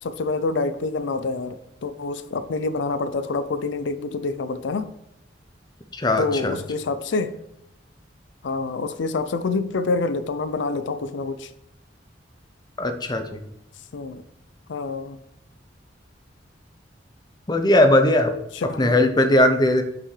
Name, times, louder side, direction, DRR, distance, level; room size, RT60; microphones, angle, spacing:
voice 1, 0.0-1.6 1.8-4.9 6.2-7.3 8.4-11.5 13.9-14.2 14.7-15.2 18.5-18.9, left 3 dB, 75° left, 12 dB, 0.5 m, -27 dB
voice 2, 5.9-6.5 12.8-13.4 17.5-18.4 18.8-19.8, left 1 dB, 20° left, 7 dB, 0.6 m, -19 dB
8.2 x 5.7 x 3.2 m, 0.83 s
head